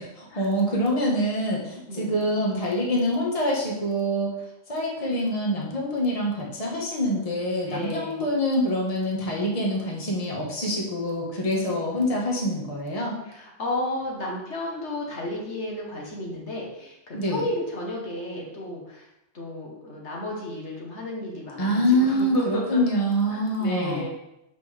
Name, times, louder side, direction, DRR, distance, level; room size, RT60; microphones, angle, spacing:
voice 1, 0.0-4.3 4.7-13.2 17.1-17.4 21.6-24.0, equal, 30° left, -2 dB, 1.4 m, -25 dB
voice 2, 7.6-8.2 13.2-19.1 19.3-22.8 23.3-24.1, left 1 dB, 65° left, -2 dB, 1.6 m, -33 dB
7.6 x 5.5 x 3.3 m, 0.87 s
omnidirectional pair, 1.3 m